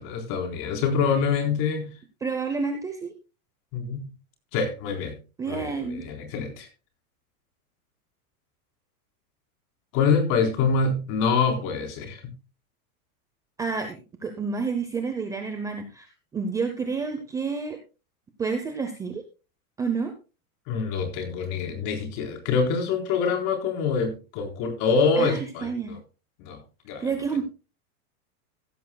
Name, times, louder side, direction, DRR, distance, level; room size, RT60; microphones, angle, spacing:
voice 1, 0.0-1.9 3.7-4.1 4.5-5.2 5.5-6.7 9.9-12.3 20.7-26.0 26.4-26.6 26.9-27.1, left 5 dB, 40° left, 4.0 m, -25 dB
voice 2, 2.2-3.1 5.4-6.0 13.6-16.1 16.3-17.8 18.4-19.2 19.8-20.1 25.2-25.9 27.0-27.4, right 5 dB, 10° right, 0.6 m, -29 dB
15.5 x 13.5 x 2.3 m
supercardioid pair, 165°, 44 cm